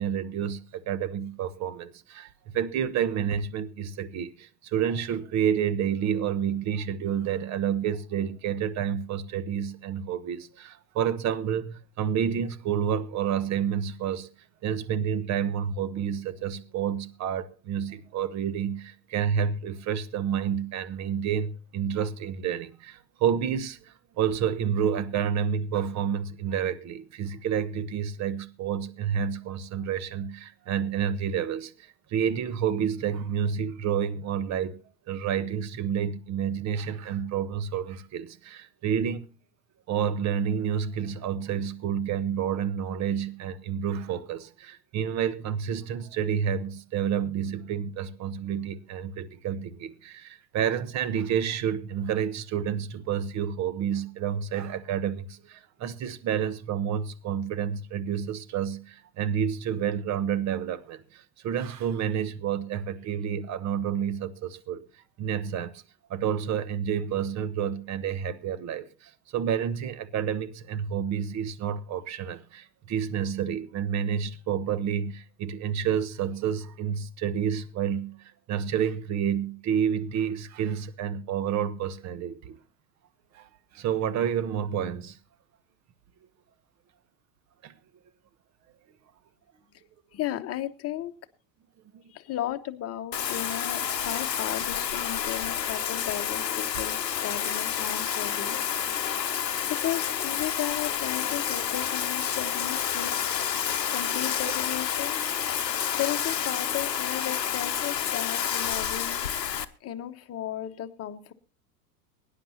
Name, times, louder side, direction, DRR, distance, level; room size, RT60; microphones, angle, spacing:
voice 1, 0.0-14.3 14.6-34.8 35.1-39.3 39.9-64.8 65.2-65.8 66.1-82.6 83.3-83.5 83.7-85.2 87.6-87.7 91.9-92.0, right 8 dB, 35° right, 1.1 m, -29 dB
voice 2, 90.1-91.1 92.1-98.7 99.8-103.1 103.9-105.2 105.9-109.3 109.8-111.3, left 12 dB, 30° left, 1.2 m, -35 dB
Bathtub (filling or washing), 93.1-109.6, left 9 dB, 85° left, 0.9 m, -29 dB
23.0 x 10.0 x 2.8 m
figure-of-eight pair, 85°, 48 cm